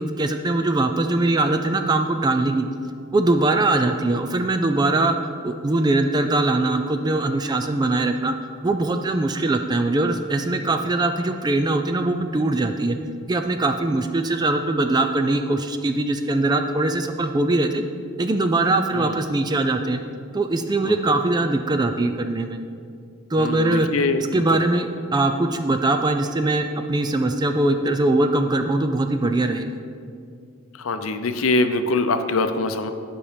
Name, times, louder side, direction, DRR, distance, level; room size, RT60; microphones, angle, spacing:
voice 1, 0.0-2.6 3.1-8.3 8.6-13.0 13.3-17.8 18.2-20.0 20.3-22.6 23.3-23.9 24.2-29.7, right 2 dB, 20° right, 7 dB, 0.3 m, -21 dB
voice 2, 23.4-24.2 24.5-24.6 30.8-32.9, left 3 dB, 70° left, 9 dB, 0.6 m, -23 dB
11.0 x 5.5 x 5.1 m, 2.3 s
head